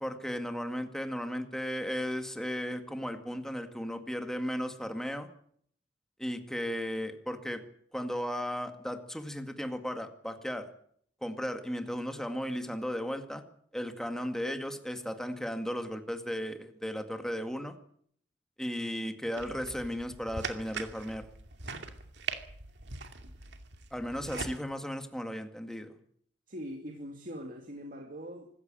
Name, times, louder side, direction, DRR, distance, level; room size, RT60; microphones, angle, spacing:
voice 1, 0.0-5.3 6.2-7.6 7.9-10.7 11.2-13.4 13.7-17.8 18.6-21.3 23.9-26.0, equal, 5° left, 6 dB, 2.0 m, -35 dB
sound 1, 19.4-24.6, right 4 dB, 70° right, 2.4 m, -41 dB
voice 2, 26.5-28.5, equal, 50° right, 3 dB, 2.7 m, -42 dB
25.5 x 14.0 x 9.0 m, 0.66 s
head